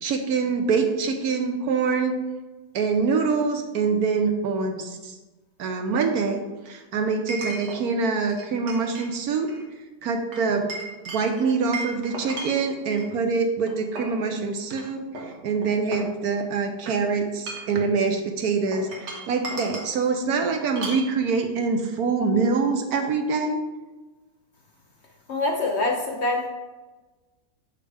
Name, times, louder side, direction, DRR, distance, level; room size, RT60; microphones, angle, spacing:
voice 1, 0.0-2.2 2.7-5.1 5.6-9.5 10.0-10.7 11.1-15.1 15.4-23.6, right 4 dB, 70° right, 5 dB, 1.1 m, -25 dB
Chink clink, 3.8-3.9 7.3-7.8 8.3-9.1 9.4-9.6 10.3-13.1 13.7-14.2 14.7-14.8 15.2-16.6 17.3-17.8 18.7-19.9 20.8-21.1, right 2 dB, 90° right, 1.9 m, -36 dB
voice 2, 25.3-26.5, left 2 dB, 55° left, 1 dB, 0.8 m, -25 dB
6.7 x 5.3 x 3.4 m, 1.2 s
omnidirectional pair, 1.8 m